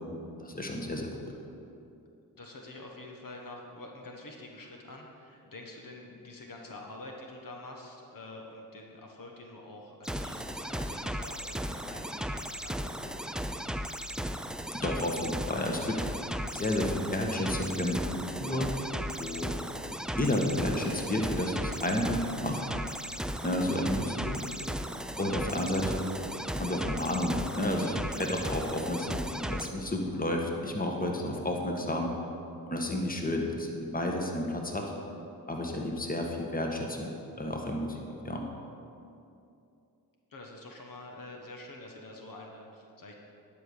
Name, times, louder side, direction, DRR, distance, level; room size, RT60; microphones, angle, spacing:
voice 1, 0.4-1.3 14.7-16.0 16.5-18.7 19.2-19.6 20.1-22.6 23.4-24.4 25.2-26.1 26.5-32.1 32.7-34.9 35.5-37.1 37.4-38.4, left 1 dB, 20° left, 1 dB, 1.6 m, -31 dB
voice 2, 2.4-13.2 40.3-43.1, left 2 dB, 55° left, 0 dB, 1.4 m, -47 dB
sound 1, 10.0-29.7, equal, ahead, 0.4 m, -36 dB
10.5 x 5.5 x 6.7 m, 2.6 s
supercardioid pair, 50°, 39 cm